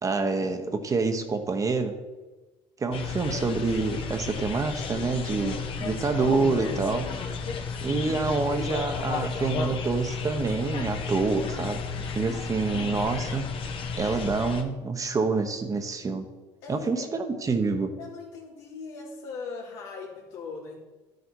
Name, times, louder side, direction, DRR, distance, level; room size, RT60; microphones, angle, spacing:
voice 1, 0.0-1.9 2.8-7.1 7.8-11.8 12.1-13.5 14.0-16.3 16.7-17.9, right 4 dB, 30° right, 7 dB, 1.1 m, -27 dB
sound 1, 2.9-14.6, left 5 dB, 50° left, 1.2 m, -33 dB
voice 2, 4.7-5.1 5.8-6.1 12.3-12.4 16.6-17.1 18.0-20.8, left 4 dB, 80° left, -4 dB, 3.2 m, -40 dB
11.5 x 6.8 x 4.7 m, 1.2 s
supercardioid pair, 95°, 12 cm